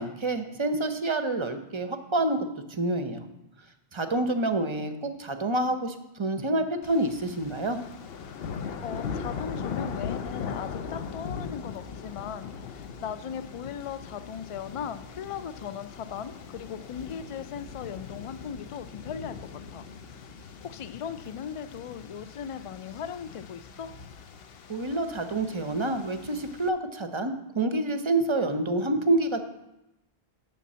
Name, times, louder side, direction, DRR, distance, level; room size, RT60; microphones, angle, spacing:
voice 1, 0.0-3.3 3.9-7.8 24.7-29.4, right 2 dB, 35° right, 8 dB, 0.6 m, -28 dB
sound 1, 6.8-26.7, left 6 dB, 70° left, 0.9 m, -40 dB
voice 2, 8.8-19.8 20.1-20.3 20.6-23.9, left 8 dB, 55° left, 12 dB, 0.4 m, -38 dB
7.0 x 5.9 x 7.4 m, 0.91 s
omnidirectional pair, 1.0 m